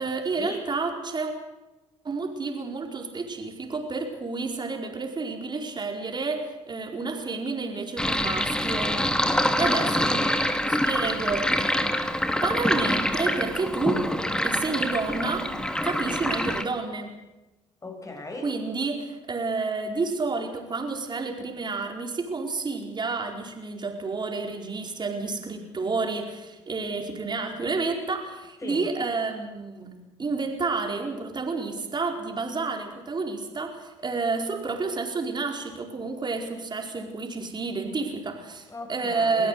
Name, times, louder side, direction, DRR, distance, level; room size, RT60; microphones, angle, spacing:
voice 1, 0.0-1.3 2.0-9.0 9.6-10.3 10.6-11.7 12.4-14.1 14.4-15.5 15.8-17.2 18.4-39.5, right 4 dB, 30° right, 3 dB, 4.6 m, -30 dB
Sink (filling or washing), 8.0-16.6, left 1 dB, 5° left, 2.0 m, -26 dB
voice 2, 8.9-10.0 10.6-10.9 11.7-11.9 16.0-16.3 17.8-18.5 28.6-28.8 38.7-39.5, left 2 dB, 20° left, 3 dB, 7.8 m, -38 dB
23.0 x 15.5 x 8.2 m, 1.0 s
hypercardioid pair, 65°, 14 cm